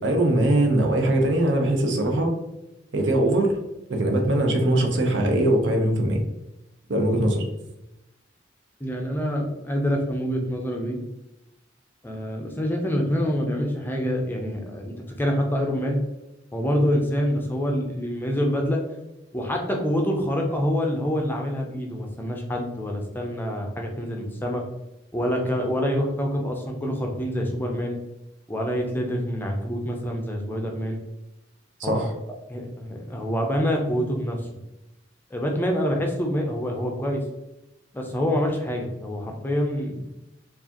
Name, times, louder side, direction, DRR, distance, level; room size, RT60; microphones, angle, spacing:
voice 1, 0.0-2.3 2.9-3.5 3.9-6.2 6.9-7.5 31.8-32.1, right 1 dB, 70° right, 2 dB, 0.7 m, -21 dB
voice 2, 8.8-11.0 12.0-16.0 16.5-18.8 19.3-24.6 25.1-28.0 28.5-31.0 31.8-32.1 32.5-34.5 35.3-37.2 37.9-40.1, equal, 10° left, 1 dB, 0.5 m, -26 dB
4.6 x 2.4 x 2.8 m, 0.94 s
head